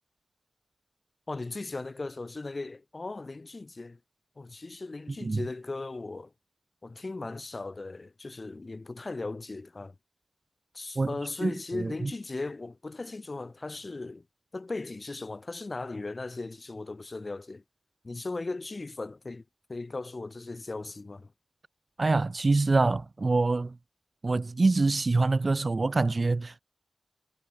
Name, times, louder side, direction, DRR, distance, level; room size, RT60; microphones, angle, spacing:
voice 1, 1.3-4.0 4.4-6.3 6.8-10.0 10.7-14.3 14.5-17.6 18.0-19.4 19.7-21.3, left 3 dB, 30° left, 2.2 m, -37 dB
voice 2, 11.0-12.1 22.0-23.8 24.2-26.6, right 3 dB, 35° right, 0.6 m, -25 dB
wide cardioid pair, 140°, 0 cm